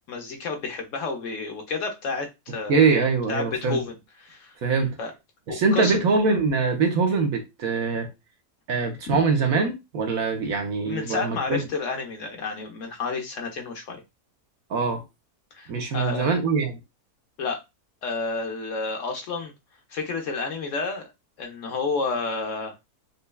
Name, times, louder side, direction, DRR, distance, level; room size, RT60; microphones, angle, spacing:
voice 1, 0.1-4.5 5.0-5.1 5.5-6.0 9.1-9.2 10.8-14.0 15.5-16.3 17.4-17.6 18.0-19.5 19.9-21.1 21.4-22.8, left 4 dB, 60° left, 1.0 m, -30 dB
voice 2, 2.7-3.8 4.6-4.9 5.5-8.1 8.7-11.6 14.7-15.0 15.7-16.8, right 4 dB, 70° right, 1.2 m, -23 dB
5.3 x 2.2 x 2.2 m
omnidirectional pair, 1.6 m